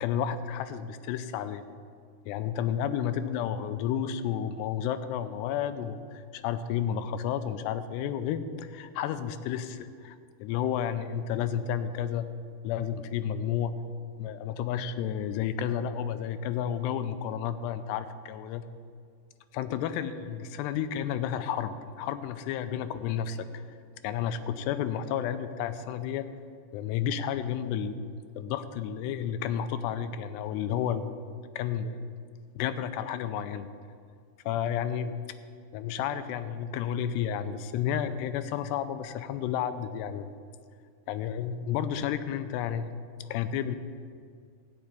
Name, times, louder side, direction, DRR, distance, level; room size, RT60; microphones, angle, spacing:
voice 1, 0.0-1.6 2.3-12.3 12.6-13.8 14.2-18.7 19.5-23.6 24.0-26.3 26.7-28.0 28.4-31.2 31.6-32.0 32.6-33.7 34.5-35.2 35.7-40.3 41.1-42.9 43.2-43.8, left 9 dB, 85° left, 11 dB, 2.7 m, -31 dB
14.0 x 5.7 x 9.5 m, 2.1 s
omnidirectional pair, 4.8 m